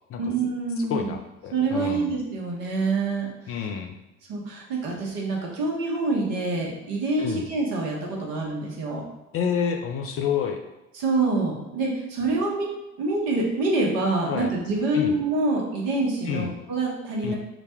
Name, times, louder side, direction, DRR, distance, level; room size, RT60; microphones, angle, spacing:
voice 1, 0.2-1.1 1.5-3.3 4.3-9.0 10.9-12.7 13.0-17.3, right 3 dB, 55° right, -2 dB, 1.2 m, -26 dB
voice 2, 0.8-2.1 3.5-4.0 7.2-7.4 9.3-10.6 14.3-14.5 14.9-15.1 16.3-16.5 17.2-17.3, left 7 dB, 35° left, 4 dB, 0.4 m, -28 dB
3.9 x 2.2 x 4.4 m, 0.98 s
figure-of-eight pair, 60°, 40 cm